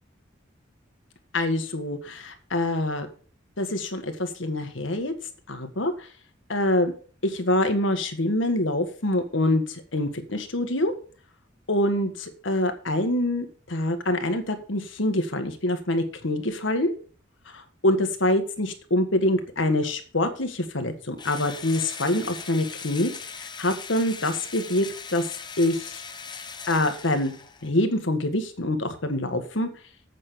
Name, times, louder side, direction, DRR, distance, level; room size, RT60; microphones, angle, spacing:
voice 1, 1.3-3.1 3.6-5.1 5.5-6.1 6.5-6.9 7.2-10.9 11.7-16.9 17.5-23.1 23.4-24.9 25.1-25.2 25.6-26.0 26.7-27.3 27.6-29.7, left 1 dB, 85° left, 7 dB, 1.7 m, -25 dB
Engine / Drill, 21.2-27.8, left 5 dB, 25° left, 1.0 m, -39 dB
8.5 x 6.4 x 6.8 m, 0.40 s
head